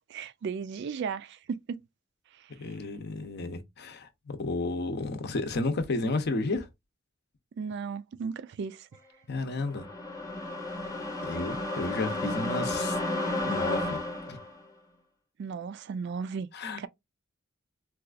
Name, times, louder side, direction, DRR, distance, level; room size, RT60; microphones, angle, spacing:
voice 1, 0.1-1.8 2.3-2.7 7.6-8.9 15.4-16.5 16.8-16.9, right 6 dB, 55° right, 0.3 m, -35 dB
voice 2, 2.6-6.7 9.3-9.9 11.2-13.0 13.4-14.0 14.3-14.4 16.5-16.9, left 2 dB, 55° left, 0.7 m, -32 dB
sound 1, 9.5-14.6, left 2 dB, 15° left, 0.8 m, -32 dB
4.0 x 2.3 x 2.5 m
head